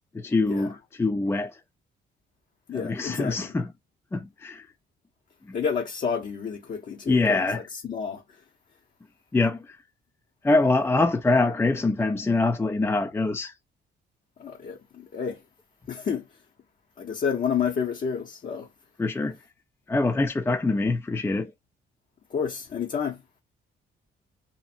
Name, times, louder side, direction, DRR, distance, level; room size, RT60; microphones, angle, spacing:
voice 1, 0.1-0.7 1.0-1.5 2.7-3.7 4.1-4.7 7.1-7.6 9.3-9.8 10.4-13.5 19.0-19.4 19.9-21.5, left 3 dB, 15° left, 0.3 m, -24 dB
voice 2, 2.7-3.5 5.5-7.4 7.7-8.2 14.4-15.4 15.9-16.2 17.0-18.7 22.3-23.2, left 6 dB, 45° left, 0.7 m, -30 dB
2.7 x 2.5 x 2.4 m
cardioid pair, 90°, 20 cm